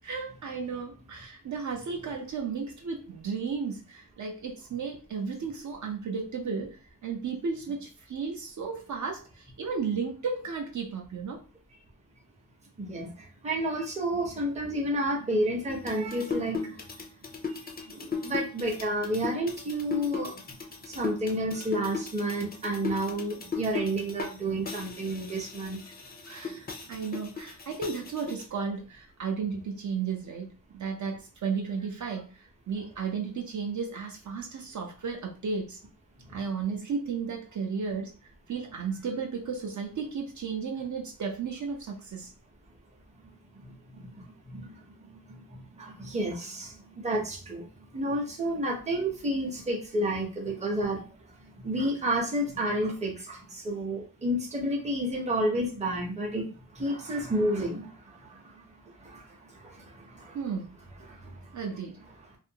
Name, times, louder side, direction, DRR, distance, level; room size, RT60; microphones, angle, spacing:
voice 1, 0.0-11.4 26.3-35.8 36.3-42.3 60.3-60.8 61.5-62.0, right 5 dB, 60° right, 0.6 m, -34 dB
voice 2, 12.8-13.1 13.4-16.7 17.9-20.3 20.9-25.8 43.6-44.1 44.5-44.8 45.8-46.7 47.0-47.7 47.9-51.0 51.6-56.5 56.8-57.9 59.0-59.2 59.6-59.7 60.2-60.3 61.0-61.2, right 1 dB, 20° right, 0.6 m, -30 dB
sound 1, 15.7-24.4 24.7-28.5, left 5 dB, 30° left, 0.4 m, -37 dB
2.5 x 2.5 x 2.7 m
wide cardioid pair, 160°, 34 cm